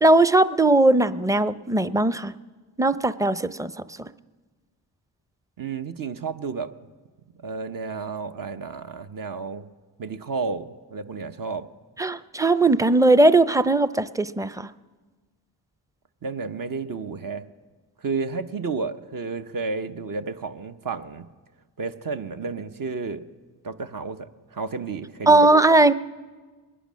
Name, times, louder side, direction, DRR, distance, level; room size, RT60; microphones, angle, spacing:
voice 1, 0.0-2.3 2.8-4.1 12.0-14.7 25.3-25.9, right 2 dB, 10° right, 15 dB, 0.6 m, -19 dB
voice 2, 5.6-6.7 7.4-9.6 10.0-11.7 16.2-17.4 18.0-21.2 21.8-23.2 23.6-25.5, right 4 dB, 50° right, 8 dB, 1.0 m, -31 dB
21.5 x 10.0 x 6.3 m, 1.3 s
supercardioid pair, 50°, 43 cm